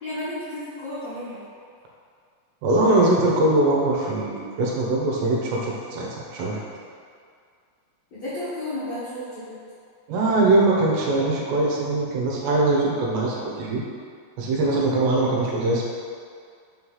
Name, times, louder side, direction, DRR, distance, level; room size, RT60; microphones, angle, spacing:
voice 1, 0.0-1.4 8.1-9.6, left 1 dB, 65° left, -13 dB, 1.8 m, -32 dB
voice 2, 2.6-6.6 10.1-13.8 14.4-15.8, right 2 dB, 80° right, -3 dB, 3.0 m, -22 dB
6.5 x 3.2 x 5.5 m, 2.2 s
omnidirectional pair, 5.0 m